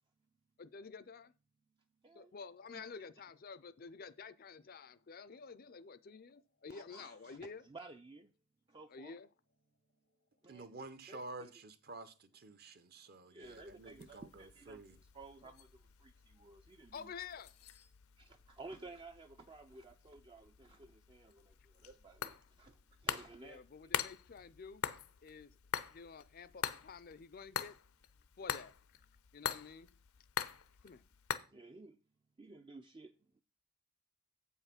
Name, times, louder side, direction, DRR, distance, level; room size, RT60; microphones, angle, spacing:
voice 1, 0.6-1.3 2.2-7.6 8.9-9.3 16.9-17.5 23.4-24.8 25.2-25.6 25.9-27.7 28.4-28.7 29.3-29.9 30.8-31.0, left 5 dB, 40° left, 0.4 m, -50 dB
voice 2, 6.7-8.3 8.7-9.1 10.4-11.5 13.3-17.1 18.2-23.6 30.8-31.0 31.5-32.0 32.4-33.4, right 3 dB, 25° right, 0.4 m, -55 dB
voice 3, 10.5-15.0, right 2 dB, 45° right, 0.8 m, -50 dB
sound 1, 13.4-31.4, left 8 dB, 80° left, 0.7 m, -45 dB
7.9 x 5.6 x 5.8 m
head